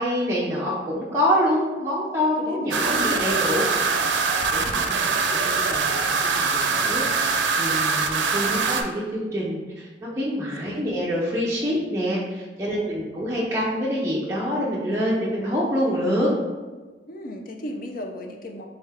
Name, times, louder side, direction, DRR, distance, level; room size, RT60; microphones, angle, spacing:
voice 1, 0.0-3.6 4.5-16.3, equal, 15° right, -7 dB, 0.5 m, -26 dB
voice 2, 2.4-4.2 10.7-10.9 11.5-11.8 12.6-13.3 17.1-18.7, left 1 dB, 50° left, 3 dB, 0.5 m, -37 dB
sound 1, 2.7-8.8, right 4 dB, 80° right, 0.4 m, -23 dB
3.6 x 3.3 x 3.3 m, 1.3 s
head